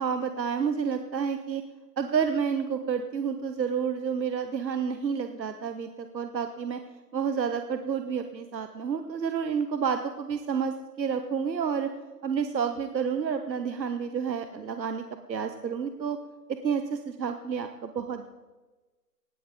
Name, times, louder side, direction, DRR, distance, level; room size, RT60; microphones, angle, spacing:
voice 1, 0.0-1.6 2.0-6.8 7.1-11.9 12.2-15.0 15.3-16.2 16.6-18.3, right 6 dB, 85° right, 8 dB, 1.3 m, -30 dB
19.5 x 14.0 x 3.9 m, 1.2 s
hypercardioid pair, 170°, 50 cm